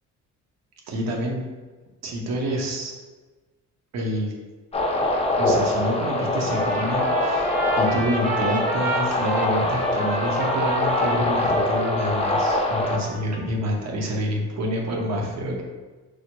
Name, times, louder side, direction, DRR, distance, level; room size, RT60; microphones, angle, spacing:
voice 1, 0.9-1.4 2.0-2.9 3.9-4.3 5.4-15.6, equal, 60° right, 0 dB, 0.9 m, -28 dB
sound 1, 4.7-13.0, left 2 dB, 20° left, 0.6 m, -24 dB
Trumpet, 6.5-13.4, right 3 dB, 25° right, 0.6 m, -30 dB
4.9 x 2.0 x 3.0 m, 1.3 s
cardioid pair, 90°, 30 cm